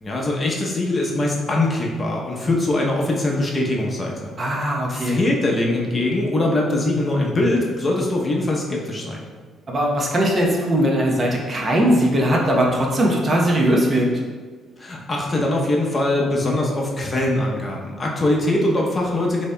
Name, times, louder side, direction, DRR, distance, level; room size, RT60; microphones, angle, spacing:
voice 1, 0.0-4.3 4.9-9.3 14.8-19.5, left 1 dB, 30° left, -2 dB, 0.7 m, -22 dB
voice 2, 4.4-5.2 9.7-14.1, equal, 35° right, -2 dB, 0.8 m, -19 dB
6.6 x 2.8 x 2.2 m, 1.5 s
cardioid pair, 90°, 0 cm